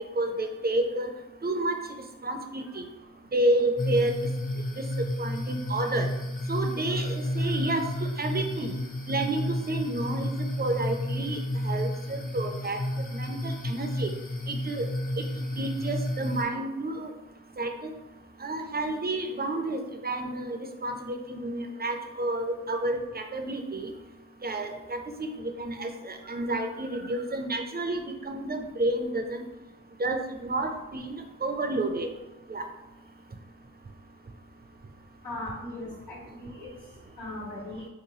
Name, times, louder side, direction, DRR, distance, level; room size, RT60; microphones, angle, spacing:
voice 1, 0.2-1.1 1.4-1.8 2.2-2.8 3.3-4.2 4.8-4.9 5.2-6.1 6.5-7.9 8.2-8.7 9.1-10.3 10.6-11.4 11.6-12.8 13.1-14.1 14.5-14.9 15.2-15.3 15.6-17.1 17.6-17.9 18.4-23.9 24.4-29.4 30.0-31.1 31.4-32.1 32.5-32.6, right 2 dB, 30° right, 5 dB, 0.5 m, -30 dB
sound 1, 3.8-16.4, left 1 dB, 25° left, 0.8 m, -31 dB
voice 2, 35.2-36.7 37.2-37.9, left 1 dB, 90° left, -6 dB, 1.5 m, -38 dB
3.2 x 2.9 x 3.0 m, 0.99 s
cardioid pair, 50°, 32 cm